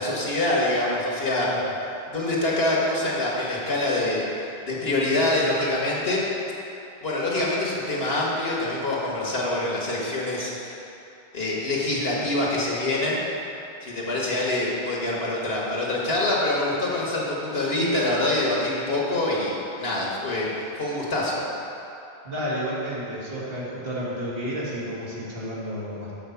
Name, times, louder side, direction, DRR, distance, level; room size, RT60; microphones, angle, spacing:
voice 1, 0.0-1.5 2.1-4.2 4.6-6.2 7.0-10.7 11.3-13.2 13.8-21.4, left 2 dB, 75° left, -4 dB, 1.7 m, -25 dB
voice 2, 22.2-26.2, equal, 70° right, -7 dB, 2.0 m, -31 dB
7.8 x 4.3 x 7.0 m, 2.8 s
omnidirectional pair, 1.0 m